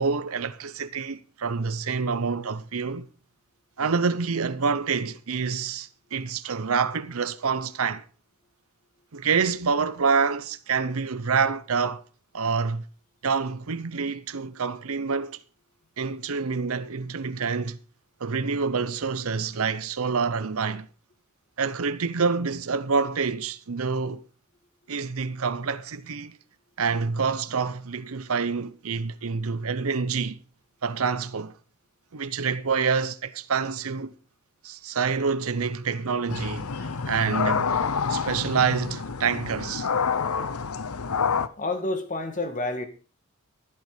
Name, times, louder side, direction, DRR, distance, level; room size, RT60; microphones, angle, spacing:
voice 1, 0.0-3.1 3.8-8.0 9.1-12.0 12.3-12.9 13.2-15.4 16.0-17.8 18.2-20.9 21.6-24.2 24.9-26.4 26.8-30.4 30.8-31.5 32.1-34.1 34.6-37.8 38.1-39.9, right 5 dB, 70° right, 0.7 m, -27 dB
sound 1, 36.3-41.5, left 6 dB, 75° left, 0.8 m, -28 dB
voice 2, 41.6-42.9, left 2 dB, 35° left, 2.0 m, -29 dB
15.0 x 8.1 x 5.0 m
head